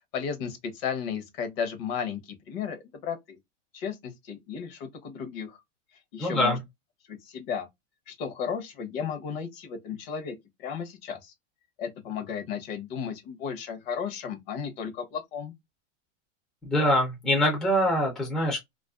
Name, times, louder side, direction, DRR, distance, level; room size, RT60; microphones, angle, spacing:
voice 1, 0.1-3.4 3.7-5.6 6.1-6.6 7.1-7.7 8.1-11.3 11.8-15.5, left 7 dB, 50° left, 0.8 m, -34 dB
voice 2, 6.2-6.6 16.6-18.6, equal, ahead, 0.4 m, -24 dB
2.4 x 2.3 x 2.3 m
supercardioid pair, 145°, 37 cm